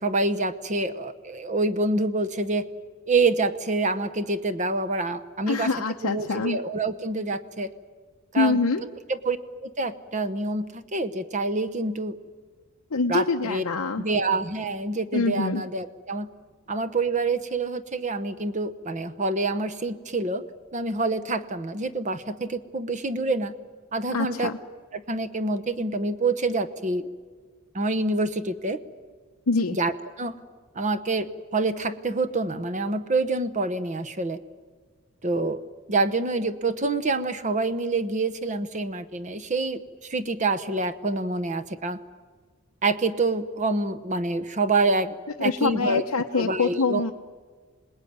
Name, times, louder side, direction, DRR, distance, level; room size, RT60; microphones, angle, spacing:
voice 1, 0.0-2.7 3.1-5.7 6.0-7.7 8.3-9.4 9.6-12.2 13.1-13.6 14.0-16.3 16.7-20.4 20.7-23.5 23.9-24.5 24.9-27.1 27.7-28.8 29.7-29.9 30.2-30.3 30.7-34.4 35.2-35.6 35.9-42.0 42.8-46.0 46.4-47.0, right 3 dB, 35° right, 9 dB, 0.9 m, -27 dB
voice 2, 5.5-6.6 8.4-8.8 12.9-14.0 15.1-15.6 24.1-24.6 29.5-29.8 45.4-47.1, left 3 dB, 85° left, 3 dB, 0.8 m, -25 dB
26.5 x 20.0 x 9.5 m, 1.5 s
head